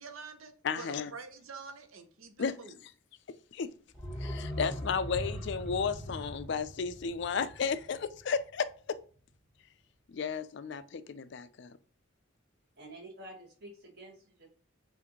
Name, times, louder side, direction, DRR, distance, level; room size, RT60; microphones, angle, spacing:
voice 1, 0.0-2.8, right 4 dB, 80° right, 0.7 m, -47 dB
voice 2, 0.6-1.1 2.4-2.9 3.5-3.7 4.2-9.0 10.1-11.8, left 6 dB, 55° left, 0.3 m, -33 dB
sound 1, 3.9-8.7 9.0-9.1, equal, 5° right, 1.0 m, -41 dB
voice 3, 12.8-14.5, right 1 dB, 50° right, 1.4 m, -49 dB
5.8 x 2.6 x 2.9 m
head